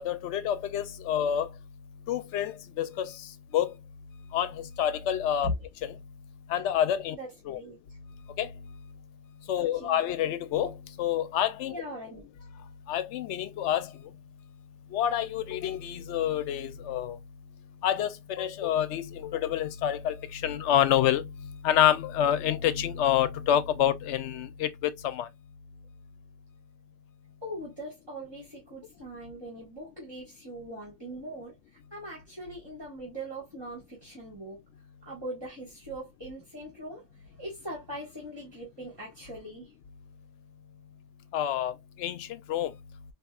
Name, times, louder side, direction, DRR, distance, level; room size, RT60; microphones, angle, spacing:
voice 1, 0.0-1.5 2.1-3.1 3.5-3.7 4.3-5.5 5.8-5.9 6.5-7.2 7.5-7.6 8.4-8.5 9.5-11.7 12.9-13.9 14.9-17.2 17.8-21.3 21.6-25.3 41.3-42.7, left 10 dB, 90° left, 0.9 m, -28 dB
voice 2, 7.1-7.8 9.6-10.0 11.7-12.2 27.4-31.5 31.9-34.6 35.0-37.0 37.3-39.7, right 1 dB, 20° right, 1.6 m, -40 dB
4.1 x 2.6 x 2.3 m
omnidirectional pair, 1.1 m